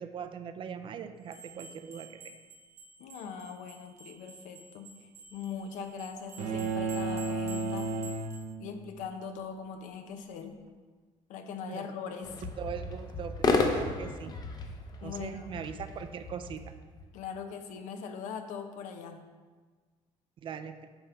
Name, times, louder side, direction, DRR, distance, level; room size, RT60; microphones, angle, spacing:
voice 1, 0.0-2.4 11.7-11.9 12.4-14.3 15.0-16.6 20.4-20.9, right 7 dB, 40° right, 9 dB, 0.5 m, -41 dB
sound 1, 1.3-8.5, right 3 dB, 20° right, 0.9 m, -51 dB
voice 2, 3.0-7.9 8.6-10.6 11.3-12.4 14.2-14.3 15.0-15.7 17.1-19.2, left 6 dB, 80° left, 6 dB, 0.8 m, -41 dB
sound 2, 6.4-8.9, right 3 dB, 85° right, 0.9 m, -33 dB
sound 3, 12.2-17.1, left 3 dB, 30° left, 0.7 m, -33 dB
8.7 x 3.6 x 5.6 m, 1.4 s
cardioid pair, 150°, 13 cm